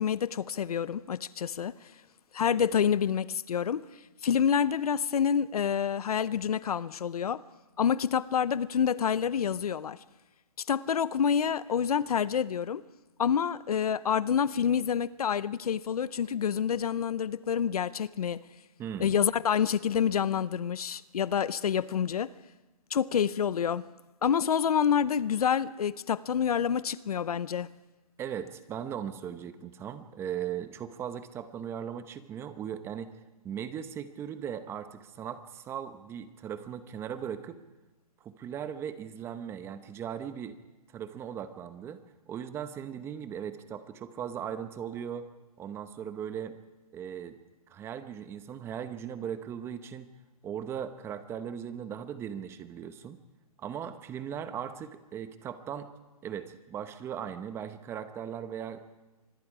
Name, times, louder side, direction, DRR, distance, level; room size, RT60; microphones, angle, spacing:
voice 1, 0.0-1.7 2.3-3.8 4.2-7.4 7.8-10.0 10.7-12.8 13.2-18.4 19.0-22.3 22.9-23.9 24.2-27.7, left 8 dB, 80° left, 0.8 m, -27 dB
voice 2, 18.8-19.2 28.2-33.1 33.4-37.6 38.2-40.6 40.9-45.3 45.6-46.6 46.9-47.4 47.7-50.1 50.4-53.2 53.6-55.9 56.2-58.8, right 8 dB, 15° right, 0.8 m, -38 dB
25.5 x 21.0 x 4.9 m
hypercardioid pair, 155°, 19 cm